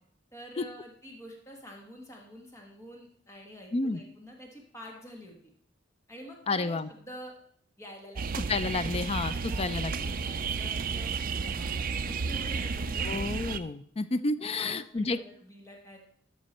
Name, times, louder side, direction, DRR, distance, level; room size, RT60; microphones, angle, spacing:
voice 1, 0.3-5.5 6.1-7.3 7.8-8.4 8.9-13.2 14.6-16.0, equal, 15° left, 0 dB, 1.5 m, -47 dB
voice 2, 6.5-6.9 8.4-10.1 13.0-15.2, left 3 dB, 30° left, 13 dB, 0.4 m, -30 dB
sound 1, 8.2-13.6, right 5 dB, 45° right, 0.5 m, -32 dB
12.5 x 6.1 x 4.3 m, 0.64 s
head